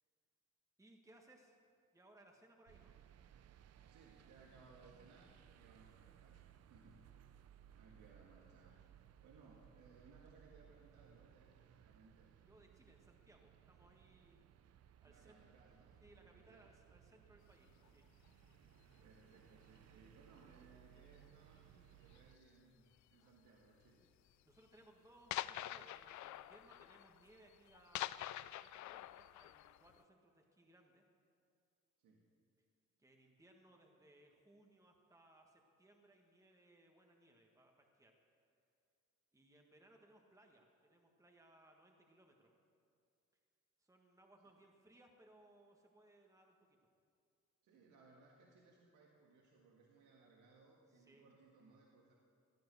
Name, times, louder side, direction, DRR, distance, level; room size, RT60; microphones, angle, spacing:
voice 1, 0.8-1.6 1.9-3.0 12.5-14.4 15.0-15.4 16.0-18.1 24.4-31.0 33.0-38.1 39.3-42.5 43.8-46.6 50.9-51.2, right 1 dB, 10° right, 1 dB, 1.6 m, -66 dB
sound 1, 2.7-22.4, right 10 dB, 55° right, 0.6 m, -64 dB
voice 2, 3.9-6.4 6.7-7.1 7.8-8.8 9.2-12.3 15.0-16.0 16.3-16.7 19.0-24.1 32.0-32.3 47.6-52.1, right 3 dB, 80° right, -1 dB, 1.8 m, -65 dB
sound 2, 17.7-17.9 18.6-19.1 19.3-19.8 20.1-20.4 20.9-21.0 21.2-21.3 22.1-22.5 23.4-23.5 23.8-23.9 24.3-24.4 24.7-24.8 25.3-30.0, left 14 dB, 70° left, 0.5 m, -46 dB
16.0 x 10.0 x 6.8 m, 2.3 s
cardioid pair, 90°, 30 cm